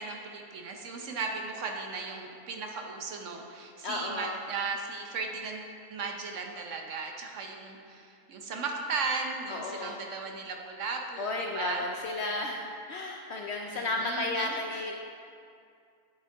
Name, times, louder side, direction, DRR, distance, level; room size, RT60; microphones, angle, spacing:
voice 1, 0.0-11.8 13.7-14.9, right 4 dB, 60° right, 2 dB, 1.0 m, -36 dB
voice 2, 3.8-4.4 9.5-10.0 11.2-14.9, left 2 dB, 65° left, 1 dB, 0.7 m, -33 dB
9.8 x 5.6 x 3.4 m, 2.4 s
omnidirectional pair, 1.5 m